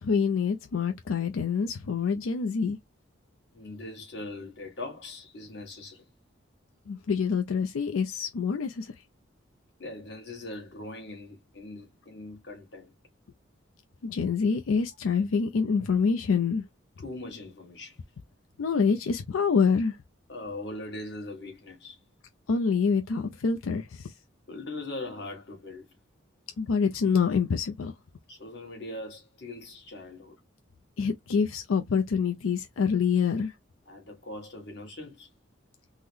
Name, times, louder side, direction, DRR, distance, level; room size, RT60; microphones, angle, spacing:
voice 1, 0.0-2.8 6.9-8.9 14.0-16.6 18.6-20.0 22.5-24.1 26.6-27.9 31.0-33.5, left 5 dB, 90° left, 0.4 m, -26 dB
voice 2, 3.5-6.1 9.8-12.9 17.0-18.0 20.3-22.0 24.5-25.9 28.3-30.4 33.9-35.3, left 2 dB, 55° left, 1.5 m, -41 dB
3.7 x 2.0 x 3.1 m
head